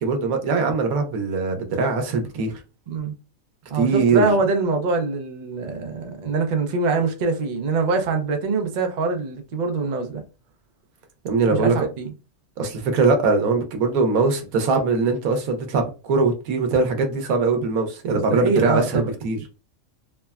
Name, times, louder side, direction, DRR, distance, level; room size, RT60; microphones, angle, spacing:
voice 1, 0.0-2.6 3.7-4.3 11.2-11.9 12.6-19.4, right 4 dB, 90° right, 1.1 m, -21 dB
voice 2, 3.7-10.2 11.5-12.1 18.3-19.1, right 3 dB, 65° right, 0.4 m, -24 dB
3.3 x 2.1 x 2.3 m
omnidirectional pair, 1.5 m